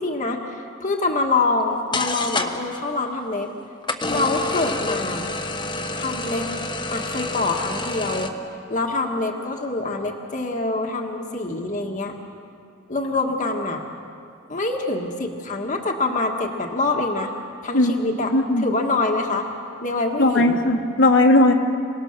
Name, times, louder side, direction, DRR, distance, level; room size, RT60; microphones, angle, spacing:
voice 1, 0.0-3.5 4.1-5.3 5.9-6.5 6.9-8.3 8.7-12.1 12.9-13.8 14.5-17.3 17.6-19.5 19.8-20.6, left 3 dB, 40° left, 2 dB, 1.6 m, -25 dB
sound 1, 1.6-1.7 1.9-2.8 3.8-8.3, left 2 dB, 25° left, 1.3 m, -28 dB
voice 2, 17.7-18.7 20.2-21.5, left 1 dB, 70° left, 2 dB, 1.8 m, -18 dB
28.5 x 18.5 x 6.7 m, 2.5 s
head